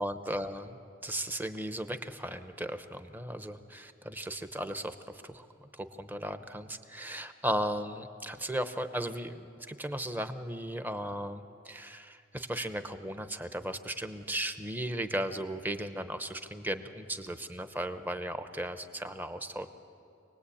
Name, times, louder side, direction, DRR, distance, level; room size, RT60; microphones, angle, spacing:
voice 1, 0.0-19.7, right 1 dB, 10° right, 9 dB, 0.9 m, -36 dB
25.5 x 19.0 x 8.6 m, 2.5 s
head